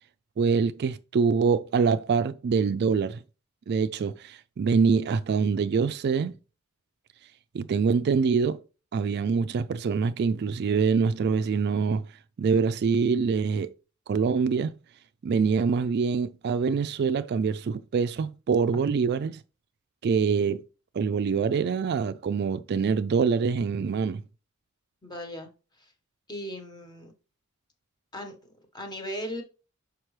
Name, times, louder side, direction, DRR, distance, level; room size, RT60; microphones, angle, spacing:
voice 1, 0.4-3.2 3.7-6.4 7.5-8.6 8.9-12.0 12.4-13.7 14.1-14.7 15.2-19.4 20.0-20.6 20.9-24.2, right 5 dB, 50° right, 0.3 m, -25 dB
voice 2, 25.0-25.5 26.3-27.1 28.1-29.4, equal, 20° left, 1.3 m, -37 dB
5.9 x 5.1 x 3.2 m
head